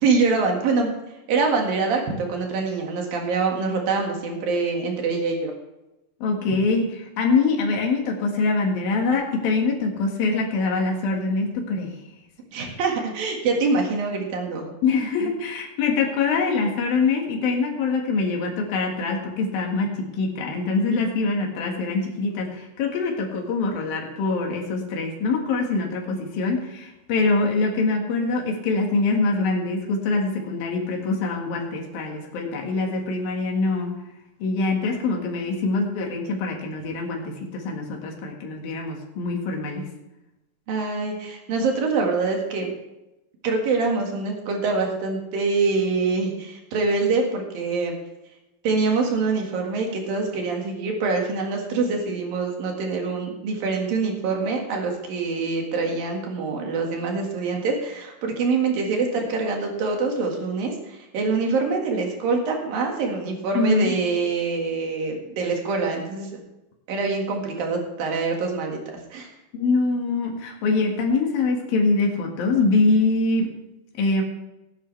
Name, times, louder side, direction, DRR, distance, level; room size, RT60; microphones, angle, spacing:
voice 1, 0.0-0.9 1.3-5.5 6.6-6.7 12.5-14.7 15.2-15.3 40.7-42.7 43.4-47.9 48.6-66.4 66.9-68.8 69.1-69.3, right 4 dB, 80° right, 1 dB, 3.7 m, -25 dB
voice 2, 6.2-12.0 12.7-12.8 14.8-33.9 34.4-39.9 63.5-63.9 69.5-73.5 74.0-74.2, left 3 dB, 85° left, 1 dB, 3.7 m, -24 dB
17.5 x 10.5 x 3.4 m, 0.95 s
omnidirectional pair, 4.0 m